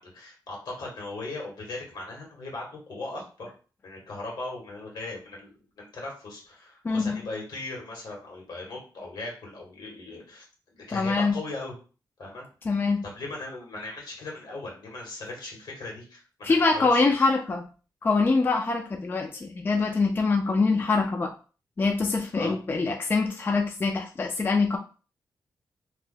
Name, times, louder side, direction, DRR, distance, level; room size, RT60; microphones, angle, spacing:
voice 1, 0.0-3.5 3.8-5.5 5.8-10.5 10.7-11.7 12.2-12.4 13.0-17.0 22.3-22.5, left 2 dB, 75° left, -1 dB, 1.5 m, -38 dB
voice 2, 6.8-7.2 10.9-11.4 12.6-13.0 16.4-17.6 18.0-21.3 21.8-24.8, left 3 dB, 30° left, 3 dB, 0.3 m, -24 dB
2.7 x 2.1 x 3.8 m, 0.37 s
wide cardioid pair, 115°, 7 cm